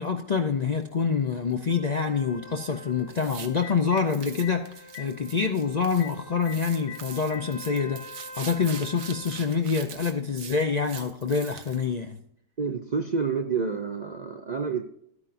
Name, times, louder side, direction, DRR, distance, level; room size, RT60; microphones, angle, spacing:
voice 1, 0.0-12.2, left 5 dB, 55° left, 0.5 m, -26 dB
Telephone, 0.8-0.9 3.1-3.2 3.5-4.0 4.4-4.5 4.9-5.1 5.3-5.5 6.0-6.1 6.5-6.6 6.9-7.4 8.4-8.5 10.0-10.1, left 11 dB, 70° left, 1.1 m, -40 dB
Trumpet, 1.7-9.5, left 2 dB, 40° left, 1.6 m, -47 dB
sound 1, 3.1-3.5 4.0-6.1 6.4-11.8, right 7 dB, 80° right, 1.3 m, -43 dB
voice 2, 12.6-14.8, right 5 dB, 50° right, 0.5 m, -28 dB
12.0 x 9.7 x 2.5 m
omnidirectional pair, 1.4 m